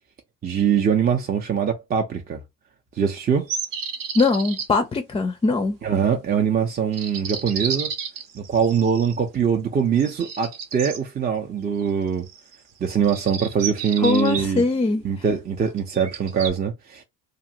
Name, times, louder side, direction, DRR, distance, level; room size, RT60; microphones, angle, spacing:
voice 1, 0.4-2.4 3.0-3.5 5.8-7.9 8.3-12.3 12.8-14.6 15.0-17.0, right 7 dB, 25° right, 0.6 m, -23 dB
sound 1, 3.5-4.7 6.9-9.2 10.0-11.0 12.2-12.6 13.0-14.4 15.8-16.5, right 7 dB, 60° right, 1.1 m, -31 dB
voice 2, 4.1-5.8 14.0-15.0, left 3 dB, 15° left, 0.4 m, -21 dB
2.5 x 2.4 x 2.8 m
hypercardioid pair, 80°, 37 cm